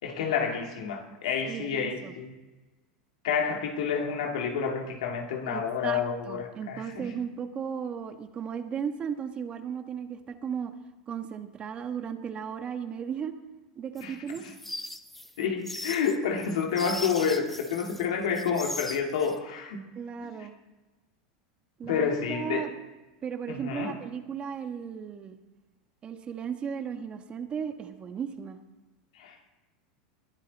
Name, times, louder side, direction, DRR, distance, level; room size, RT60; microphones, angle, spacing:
voice 1, 0.0-2.3 3.2-7.1 14.0-14.2 14.4-14.5 15.4-19.8 20.2-20.3 21.8-22.7 23.5-24.0 29.2-29.5, left 6 dB, 80° left, 2 dB, 2.5 m, -29 dB
voice 2, 1.5-2.1 5.5-10.7 11.1-13.3 13.7-14.4 20.0-20.5 21.8-22.7 23.2-25.4 26.0-28.6, right 7 dB, 30° right, 7 dB, 1.3 m, -35 dB
sound 1, 14.0-18.1 18.3-19.3, left 1 dB, 5° left, 1.0 m, -39 dB
20.5 x 11.5 x 4.2 m, 1.2 s
supercardioid pair, 110°, 3 cm